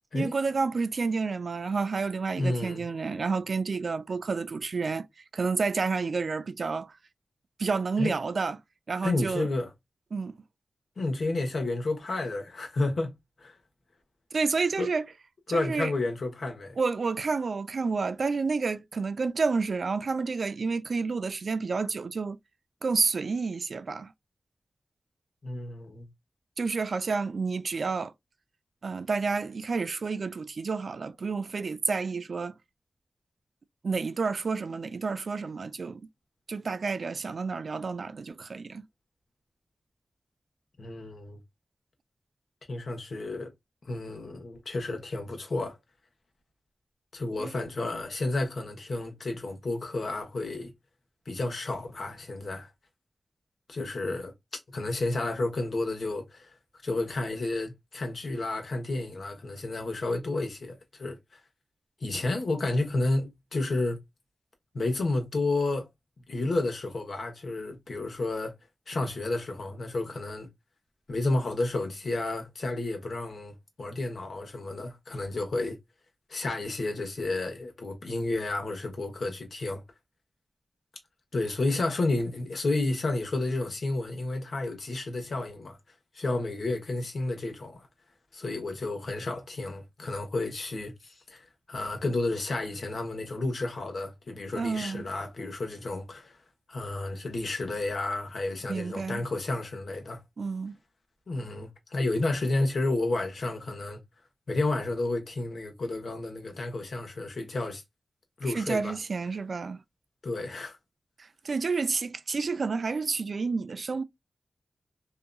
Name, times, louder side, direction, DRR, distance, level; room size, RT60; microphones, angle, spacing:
voice 1, 0.1-5.1 5.3-6.9 7.6-8.6 8.9-9.5 10.1-10.3 14.3-15.1 15.5-15.9 16.8-22.4 22.8-24.1 26.6-28.1 28.8-32.5 33.8-36.1 36.5-38.9 47.4-47.5 94.6-95.1 98.7-99.2 100.4-100.8 108.5-109.8 111.4-114.0, right 4 dB, 70° right, 0.3 m, -30 dB
voice 2, 2.4-2.9 8.0-8.1 9.0-9.7 11.0-13.1 13.4-13.6 14.8-14.9 15.5-16.8 25.4-26.1 40.8-41.4 42.7-43.5 43.8-45.8 47.1-50.7 51.3-52.7 53.7-54.3 54.7-56.5 56.8-61.4 62.0-64.0 64.7-65.9 66.3-68.5 68.9-70.5 71.1-75.8 76.3-79.8 81.3-85.8 86.1-87.9 88.3-96.4 96.7-100.2 101.3-104.0 104.5-107.8 108.4-109.0 110.2-110.8, left 2 dB, 70° left, 1.0 m, -31 dB
2.8 x 2.5 x 2.2 m
wide cardioid pair, 85°, 0 cm